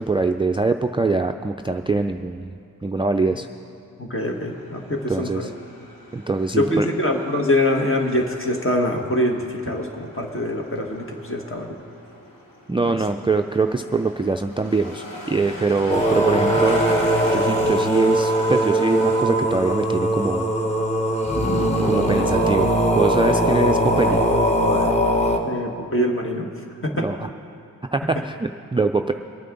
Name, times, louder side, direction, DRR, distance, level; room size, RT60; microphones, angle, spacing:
voice 1, 0.0-3.5 5.1-5.5 6.1-6.9 12.7-16.9 17.3-20.5 21.8-24.2 26.9-27.3 27.9-29.1, right 3 dB, 15° right, 5 dB, 0.3 m, -23 dB
voice 2, 4.0-5.5 6.6-11.8 12.8-13.0 25.4-26.5 26.8-27.1, left 1 dB, 35° left, 1 dB, 1.6 m, -24 dB
sound 1, 4.2-19.2, left 1 dB, 65° left, 2.2 m, -37 dB
sound 2, 15.9-25.4, right 1 dB, 20° left, 1.3 m, -20 dB
22.5 x 9.2 x 3.9 m, 2.5 s
wide cardioid pair, 75°, 35 cm